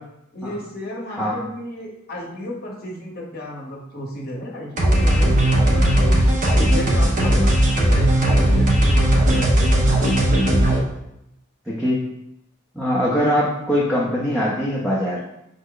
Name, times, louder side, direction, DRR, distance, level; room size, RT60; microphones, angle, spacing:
voice 1, 0.3-6.2 6.5-9.7, left 1 dB, 45° left, -1 dB, 0.9 m, -33 dB
sound 1, 4.8-10.8, right 1 dB, 40° right, 0.7 m, -17 dB
voice 2, 11.7-12.0 12.7-15.2, equal, ahead, -7 dB, 0.6 m, -22 dB
5.3 x 2.1 x 3.8 m, 0.84 s
head